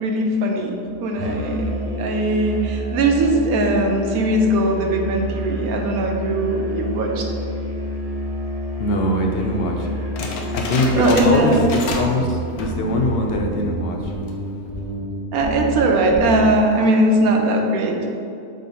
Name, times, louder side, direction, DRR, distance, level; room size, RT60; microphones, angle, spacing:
voice 1, 0.0-1.7 2.0-7.4 11.0-11.6 15.3-18.1, right 2 dB, 75° right, 2 dB, 1.3 m, -20 dB
Musical instrument, 1.2-11.1, left 1 dB, 35° right, 0.6 m, -29 dB
voice 2, 8.8-9.9 10.5-14.0, left 1 dB, 50° left, 1 dB, 0.8 m, -21 dB
sound 1, 10.2-12.2 12.5-12.8 13.3-13.4 14.1-14.5, left 3 dB, 80° left, 1.3 m, -29 dB
sound 2, 11.2-11.5 11.9-12.2 12.6-12.9 13.3-13.6 14.0-14.3 14.7-15.0 15.4-15.8 16.1-16.5, equal, 15° left, 1.6 m, -29 dB
6.6 x 3.9 x 5.3 m, 2.5 s
omnidirectional pair, 1.6 m